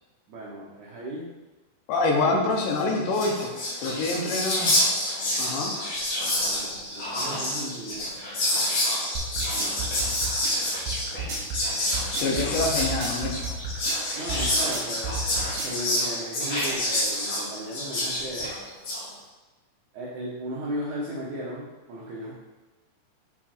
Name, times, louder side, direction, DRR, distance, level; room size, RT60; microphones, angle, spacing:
voice 1, 0.3-1.3 2.2-2.5 6.5-8.2 9.4-9.8 12.3-12.7 14.1-15.2 15.6-18.6 19.9-22.3, equal, 80° right, -5 dB, 1.7 m, -36 dB
voice 2, 1.9-3.5 3.8-4.7 5.4-5.7 12.2-13.3, left 3 dB, 85° left, 1 dB, 3.1 m, -26 dB
Whispering, 2.8-2.9 3.0-19.0, left 1 dB, 45° left, 2.1 m, -28 dB
sound 1, 9.1-15.8, right 3 dB, 60° right, 2.8 m, -31 dB
6.8 x 4.7 x 4.4 m, 1.1 s
omnidirectional pair, 5.0 m